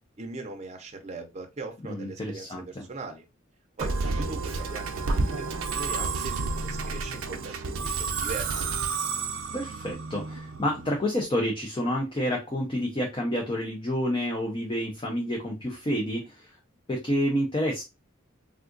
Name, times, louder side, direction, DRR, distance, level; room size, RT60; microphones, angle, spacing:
voice 1, 0.2-3.2 3.8-8.7, right 3 dB, 30° right, 4 dB, 0.6 m, -40 dB
voice 2, 1.8-2.8 9.5-16.5 16.9-17.8, equal, 25° left, 0 dB, 0.5 m, -29 dB
Musical instrument, 3.8-11.1, right 4 dB, 80° right, 0.5 m, -30 dB
3.6 x 2.4 x 2.4 m, 0.25 s
head